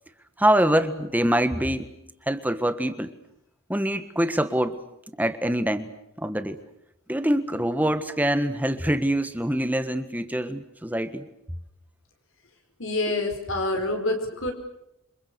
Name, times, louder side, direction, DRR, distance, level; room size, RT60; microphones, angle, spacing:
voice 1, 0.4-1.9 2.3-3.1 3.7-4.8 5.2-5.9 6.2-6.6 7.1-11.3, right 1 dB, 5° right, 10 dB, 1.5 m, -24 dB
voice 2, 12.8-14.5, left 2 dB, 65° left, 4 dB, 4.8 m, -27 dB
28.5 x 26.5 x 6.9 m, 0.83 s
head